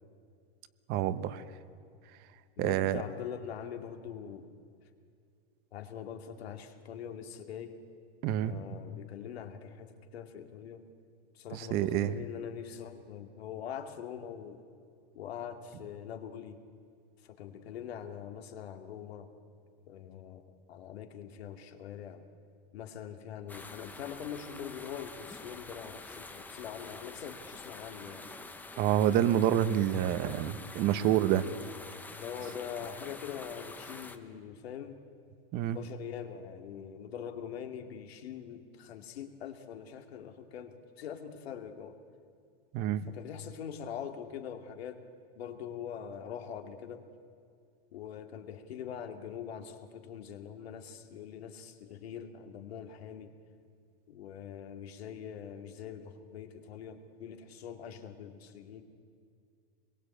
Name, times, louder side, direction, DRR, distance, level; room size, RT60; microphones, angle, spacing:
voice 1, 0.9-1.4 2.6-3.0 8.2-8.6 11.5-12.1 28.8-31.5 35.5-35.8 42.7-43.1, right 11 dB, 30° right, 13 dB, 0.9 m, -28 dB
voice 2, 2.6-4.5 5.7-7.8 8.4-10.8 11.3-14.6 15.1-16.6 17.2-19.3 19.9-20.4 20.7-22.3 22.7-28.3 32.2-35.0 35.7-42.0 43.1-45.0 45.3-47.0 47.9-53.3 54.1-58.8, left 8 dB, 80° left, 5 dB, 2.6 m, -43 dB
sound 1, 23.5-34.2, left 3 dB, 5° left, 0.8 m, -47 dB
25.5 x 22.0 x 8.6 m, 2.3 s
supercardioid pair, 155°, 31 cm